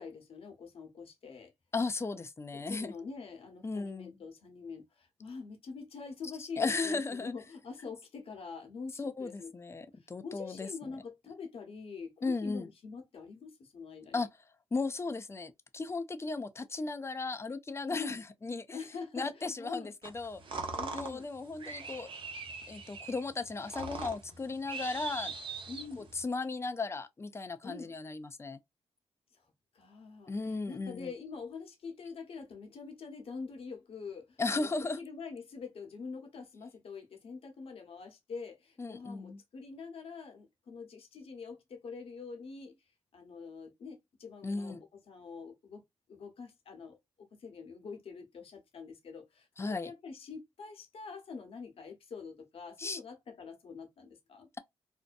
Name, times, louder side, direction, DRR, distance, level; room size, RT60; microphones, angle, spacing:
voice 1, 0.0-1.5 2.5-9.5 10.2-14.2 17.9-18.2 18.7-19.9 20.8-21.3 25.7-26.1 27.6-27.9 29.7-34.7 35.0-42.8 43.1-44.8 45.1-45.8 46.1-54.5, left 5 dB, 65° left, 1.0 m, -45 dB
voice 2, 1.7-2.9 3.6-4.1 6.4-7.3 9.0-10.9 12.2-12.7 14.1-14.3 14.7-18.8 19.1-20.4 20.9-22.1 22.7-25.3 26.0-28.6 30.3-31.1 34.4-35.0 38.8-39.4 44.4-44.8 49.6-49.9 52.8-53.0, left 3 dB, 25° left, 0.5 m, -36 dB
sound 1, 20.0-26.2, right 4 dB, 55° right, 0.8 m, -42 dB
2.6 x 2.1 x 2.5 m
cardioid pair, 65°, 10 cm